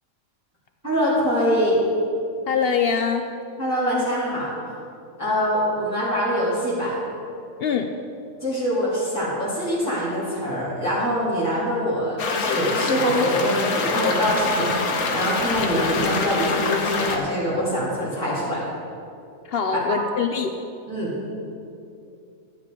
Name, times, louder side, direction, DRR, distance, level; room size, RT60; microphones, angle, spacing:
voice 1, 0.8-1.8 3.6-4.5 5.2-7.0 8.4-18.6 19.9-20.0 20.9-21.1, equal, 10° right, -10 dB, 2.5 m, -24 dB
voice 2, 2.5-3.3 7.6-7.9 19.5-20.5, left 6 dB, 70° left, 6 dB, 0.5 m, -23 dB
sound 1, 12.2-17.2, left 4 dB, 85° left, 1.5 m, -25 dB
12.5 x 9.1 x 3.7 m, 2.6 s
omnidirectional pair, 1.5 m